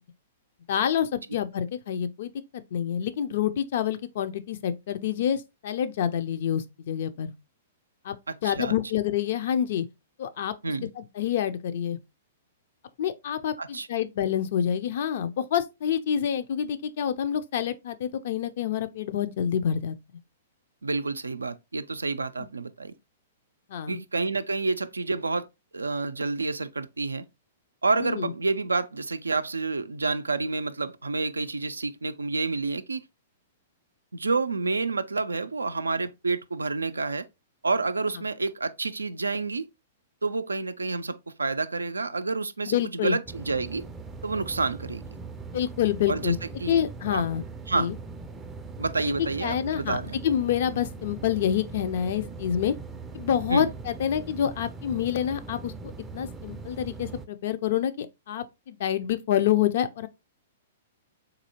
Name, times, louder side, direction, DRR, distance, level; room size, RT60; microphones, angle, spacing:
voice 1, 0.7-2.3 2.7-7.3 8.0-8.1 8.4-9.9 10.2-10.5 11.0-12.0 13.0-20.0 23.7-24.0 27.9-28.3 42.7-43.2 45.5-46.4 46.7-47.4 47.8-48.0 49.4-50.0 50.2-52.7 53.1-55.7 56.1-60.1, left 9 dB, 55° left, 0.4 m, -27 dB
voice 2, 8.3-8.7 10.6-10.9 13.6-13.9 20.8-22.9 23.9-25.5 25.7-27.3 27.8-33.0 34.1-37.3 37.6-39.6 40.2-43.8 44.2-45.1 46.1-46.3 46.6-46.9 47.1-47.2 47.7-47.9 48.8-50.2 53.5-53.7, right 3 dB, 80° right, 0.3 m, -29 dB
sound 1, 43.3-57.3, right 4 dB, 15° right, 0.4 m, -40 dB
3.9 x 2.7 x 2.8 m
figure-of-eight pair, 110°, 0 cm